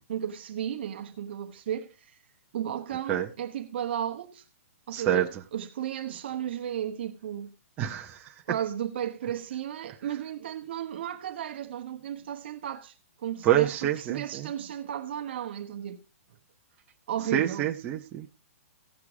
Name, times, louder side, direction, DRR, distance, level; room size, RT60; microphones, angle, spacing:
voice 1, 0.1-2.2 2.5-4.4 4.9-7.5 8.5-16.0 17.1-17.7, right 10 dB, 45° right, 1.0 m, -34 dB
voice 2, 4.9-5.4 7.8-8.3 13.4-14.5 17.3-18.3, right 12 dB, 15° right, 0.7 m, -27 dB
16.0 x 6.7 x 4.8 m
hypercardioid pair, 175°, 8 cm